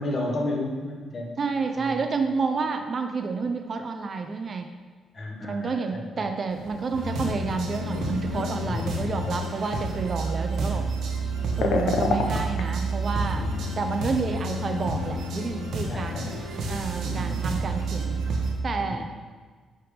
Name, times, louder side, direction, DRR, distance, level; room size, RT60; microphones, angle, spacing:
voice 1, 0.0-1.3 1.7-2.0 5.1-6.3 8.6-9.4 11.6-11.9 13.3-13.7 15.9-16.4 17.0-17.6 18.8-19.1, left 1 dB, 40° left, -1 dB, 1.3 m, -33 dB
voice 2, 1.4-4.7 5.4-10.8 11.6-13.5 13.8-16.4 16.6-18.3 18.6-19.1, right 4 dB, 45° right, 6 dB, 0.4 m, -29 dB
sound 1, 6.5-18.1, left 4 dB, 80° left, 0.6 m, -35 dB
sound 2, 6.9-18.6, right 2 dB, 75° right, 0.9 m, -30 dB
5.9 x 3.4 x 5.0 m, 1.5 s
cardioid pair, 90°, 0 cm